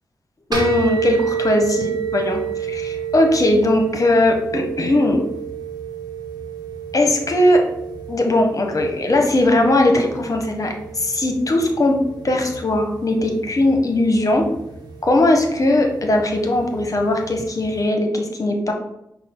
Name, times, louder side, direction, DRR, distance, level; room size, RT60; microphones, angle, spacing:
voice 1, 0.5-5.2 6.9-7.7 8.1-12.0 12.2-14.5 15.0-18.7, left 1 dB, 45° left, 3 dB, 1.0 m, -19 dB
sound 1, 0.5-17.9, right 6 dB, 60° right, 1.2 m, -30 dB
5.4 x 2.4 x 3.7 m, 0.81 s
cardioid pair, 40°, 8 cm